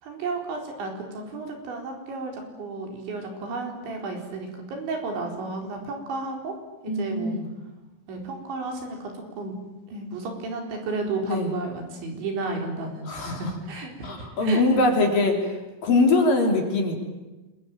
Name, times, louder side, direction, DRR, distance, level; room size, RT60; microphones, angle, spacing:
voice 1, 0.0-6.6 6.8-7.4 8.1-9.6 9.9-14.6, right 3 dB, 70° right, 2 dB, 6.6 m, -33 dB
voice 2, 6.8-7.5 11.2-11.5 13.1-13.5 14.0-15.6 15.8-17.0, left 2 dB, 50° left, 3 dB, 4.6 m, -22 dB
28.5 x 21.5 x 9.1 m, 1.1 s
omnidirectional pair, 5.6 m